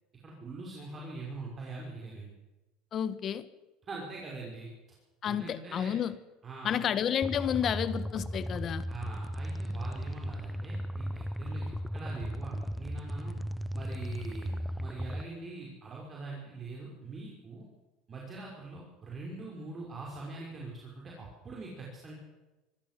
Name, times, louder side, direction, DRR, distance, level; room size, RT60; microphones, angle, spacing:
voice 1, 0.2-2.3 3.9-4.7 5.2-6.0 6.4-6.9 8.9-13.3 13.7-17.7 18.1-22.1, right 3 dB, 30° right, -2 dB, 5.5 m, -43 dB
voice 2, 2.9-3.4 5.2-6.2 6.6-8.8, left 9 dB, 40° left, 14 dB, 1.5 m, -31 dB
sound 1, 7.2-15.2, equal, ahead, 0.8 m, -36 dB
25.0 x 14.0 x 7.7 m, 1.1 s
supercardioid pair, 115°, 0 cm